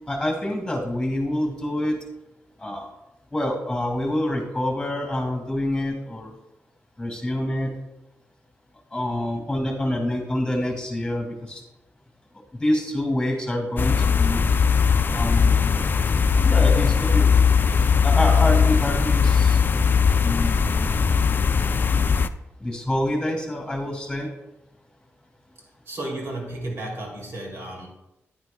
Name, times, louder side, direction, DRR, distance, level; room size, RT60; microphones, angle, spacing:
voice 1, 0.1-2.0 2.6-2.9 3.3-6.3 7.0-7.7 8.9-11.6 12.6-14.4 15.1-15.8 16.4-17.4 18.0-19.6 20.2-21.0 22.6-24.3, left 1 dB, 10° left, 3 dB, 2.1 m, -26 dB
sound 1, 13.8-22.3, left 6 dB, 45° left, 0.4 m, -19 dB
voice 2, 25.8-27.9, right 1 dB, 60° right, -1 dB, 2.9 m, -33 dB
9.5 x 9.5 x 2.3 m, 0.91 s
cardioid pair, 95°, 5 cm